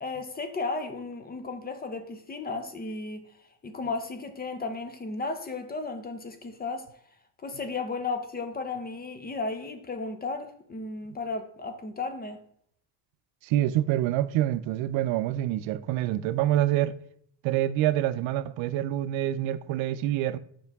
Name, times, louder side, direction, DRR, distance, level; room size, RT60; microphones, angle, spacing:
voice 1, 0.0-3.3 3.6-6.9 7.4-12.4, left 3 dB, 20° left, 0.7 m, -34 dB
voice 2, 13.4-17.0 17.4-20.4, right 13 dB, 80° right, 0.6 m, -26 dB
7.2 x 5.4 x 3.5 m
cardioid pair, 145°, 46 cm